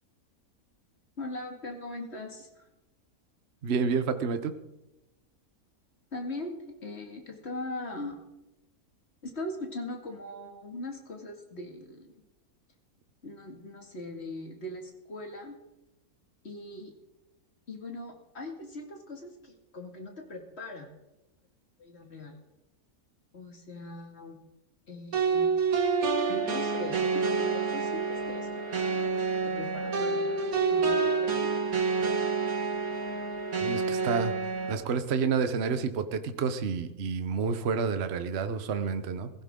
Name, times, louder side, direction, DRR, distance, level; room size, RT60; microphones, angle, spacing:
voice 1, 1.2-2.6 6.1-8.2 9.2-12.1 13.2-15.6 16.4-16.9 17.7-20.9 21.8-22.4 23.3-24.4 24.9-25.5 26.3-31.5, left 2 dB, 45° left, 2 dB, 2.5 m, -40 dB
voice 2, 3.6-4.5 33.6-34.3 34.7-39.3, right 5 dB, 50° right, 10 dB, 1.1 m, -29 dB
sound 1, 25.1-34.7, right 4 dB, 70° right, 1.9 m, -28 dB
16.5 x 15.5 x 3.8 m, 0.95 s
omnidirectional pair, 1.6 m